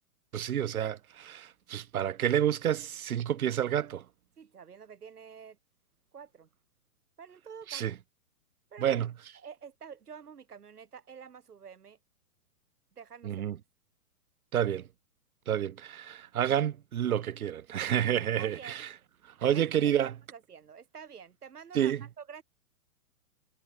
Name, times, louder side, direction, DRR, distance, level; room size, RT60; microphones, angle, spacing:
voice 1, 0.3-4.0 7.7-7.9 8.8-9.1 13.2-13.6 14.5-14.9 15.5-18.9 19.4-20.1 21.7-22.0, right 10 dB, 70° right, 2.2 m, -29 dB
voice 2, 4.4-5.6 6.1-6.5 7.2-7.9 8.7-9.1 9.4-12.0 12.9-13.4 18.4-18.8 19.5-22.4, right 7 dB, 85° right, 6.7 m, -48 dB
hypercardioid pair, 140°, 45 cm